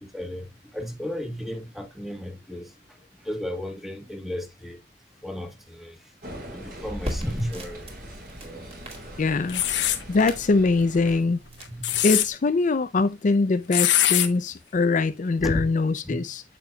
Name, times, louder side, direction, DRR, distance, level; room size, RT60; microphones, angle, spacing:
voice 1, 0.0-4.8 5.2-6.0 6.5-7.9 11.7-12.0 15.4-15.7 16.0-16.2, equal, ahead, 1.3 m, -34 dB
sound 1, 6.2-11.2, right 1 dB, 55° right, 4.1 m, -42 dB
sound 2, 6.8-12.3, equal, 35° right, 2.3 m, -39 dB
voice 2, 9.2-11.4 12.0-16.4, left 3 dB, 45° left, 0.4 m, -23 dB
sound 3, 9.5-10.0 11.6-12.3 13.7-14.3, left 13 dB, 75° left, 0.9 m, -22 dB
8.9 x 7.3 x 2.3 m
head